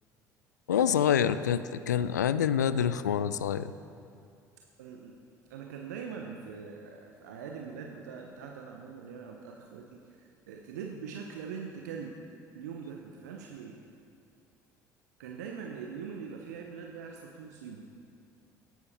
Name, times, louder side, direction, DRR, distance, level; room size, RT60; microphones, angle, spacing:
voice 1, 0.7-3.7, left 8 dB, 80° left, 15 dB, 0.4 m, -26 dB
voice 2, 4.8-5.2 5.5-12.2 12.5-13.8 15.2-17.9, right 6 dB, 70° right, 2 dB, 0.9 m, -42 dB
16.5 x 10.5 x 4.3 m, 2.4 s
figure-of-eight pair, 55°, 9 cm